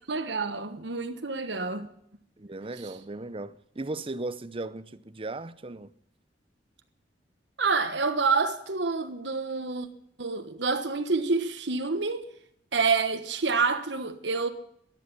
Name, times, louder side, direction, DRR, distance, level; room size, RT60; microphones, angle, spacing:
voice 1, 0.1-1.9 2.8-2.9 7.6-9.9 10.2-12.3 12.7-14.5, right 4 dB, 75° right, 1.3 m, -28 dB
voice 2, 2.4-5.9, right 2 dB, 30° right, 0.7 m, -37 dB
14.0 x 12.5 x 6.8 m
head